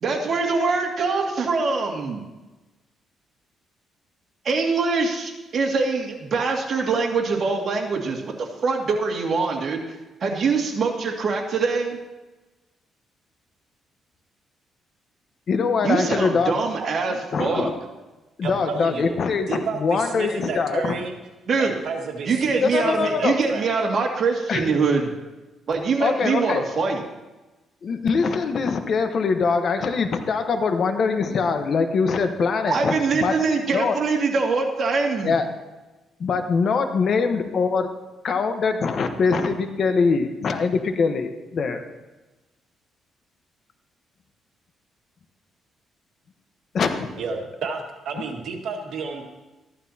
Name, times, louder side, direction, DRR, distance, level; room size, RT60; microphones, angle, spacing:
voice 1, 0.0-2.2 4.4-9.8 10.2-12.0 15.8-17.7 21.5-21.7 22.2-25.1 25.7-27.0 32.7-35.3, right 4 dB, 50° right, 0 dB, 2.2 m, -23 dB
voice 2, 15.5-16.5 17.1-17.7 18.4-21.0 22.6-23.4 24.5-24.8 26.0-26.6 27.8-33.3 33.7-34.0 35.2-35.4 36.2-37.8 38.2-41.3 41.5-41.8 46.7-47.1, left 5 dB, 55° left, 7 dB, 1.1 m, -23 dB
voice 3, 18.4-19.2 19.5-21.1 21.6-23.7 47.2-49.2, right 4 dB, 70° right, 1 dB, 1.9 m, -31 dB
14.0 x 11.5 x 2.8 m, 1.1 s
cardioid pair, 90°, 0 cm